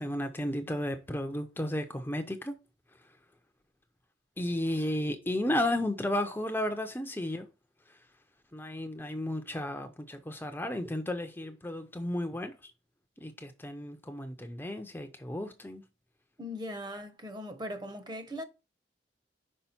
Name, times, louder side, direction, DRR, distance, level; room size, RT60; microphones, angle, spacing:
voice 1, 0.0-2.6 4.4-7.5 8.5-12.7 13.2-15.8, left 1 dB, 10° left, 0.5 m, -33 dB
voice 2, 16.4-18.4, left 1 dB, 25° right, 0.8 m, -39 dB
5.6 x 4.8 x 4.3 m
head